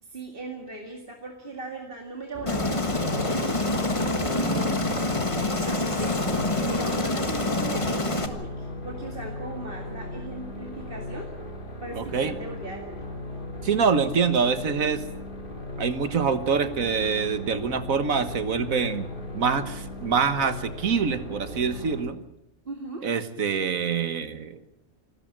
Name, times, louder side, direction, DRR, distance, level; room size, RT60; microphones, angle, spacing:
voice 1, 0.0-5.0 5.6-6.3 6.7-11.3 11.8-13.0 22.7-23.0, right 2 dB, 45° right, 2 dB, 2.4 m, -38 dB
sound 1, 2.3-22.1, left 1 dB, 40° left, 3.0 m, -37 dB
Aircraft, 2.5-8.3, left 2 dB, 25° left, 1.6 m, -26 dB
voice 2, 12.0-12.3 13.6-15.0 15.8-19.1 19.3-22.2 23.0-24.6, right 6 dB, 85° right, 11 dB, 1.9 m, -25 dB
27.5 x 13.0 x 8.9 m, 0.79 s
omnidirectional pair, 1.4 m